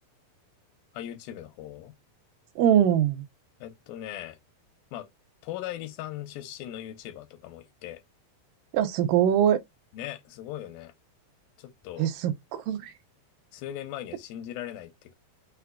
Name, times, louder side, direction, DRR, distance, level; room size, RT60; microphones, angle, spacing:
voice 1, 0.9-1.9 3.6-4.4 4.9-5.1 5.4-8.0 9.9-10.9 11.6-12.1 13.5-15.1, left 12 dB, 85° left, 2.4 m, -39 dB
voice 2, 2.6-3.2 8.7-9.6 12.0-12.9, right 10 dB, 80° right, 2.2 m, -23 dB
5.8 x 2.3 x 2.2 m
omnidirectional pair, 4.2 m